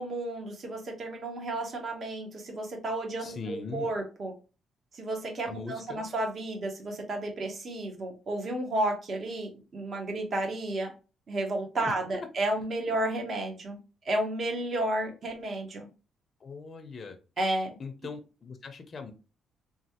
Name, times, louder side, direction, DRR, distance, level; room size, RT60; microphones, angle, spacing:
voice 1, 0.0-4.3 4.9-10.9 11.3-13.8 14.0-15.9 17.4-17.8, right 1 dB, 50° right, 2 dB, 1.0 m, -32 dB
voice 2, 3.2-3.9 5.4-6.1 11.8-12.3 16.4-17.2 17.8-19.1, left 4 dB, 45° left, 6 dB, 0.5 m, -40 dB
3.1 x 2.3 x 2.9 m, 0.32 s
cardioid pair, 90°, 0 cm